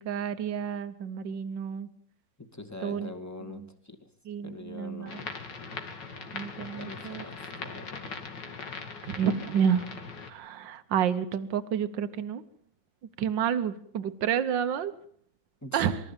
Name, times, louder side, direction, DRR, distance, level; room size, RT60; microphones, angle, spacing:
voice 1, 0.0-1.9 2.8-3.1 4.3-5.2 6.3-7.2 9.1-9.8 10.3-12.4 13.2-14.9 15.7-16.0, right 8 dB, 80° right, 12 dB, 1.8 m, -29 dB
voice 2, 2.4-4.1 4.4-5.4 6.7-8.2 15.6-15.9, left 2 dB, 10° left, 7 dB, 2.2 m, -44 dB
sound 1, 5.1-10.3, left 4 dB, 70° left, 2.9 m, -40 dB
24.5 x 14.0 x 8.9 m, 0.63 s
omnidirectional pair, 2.0 m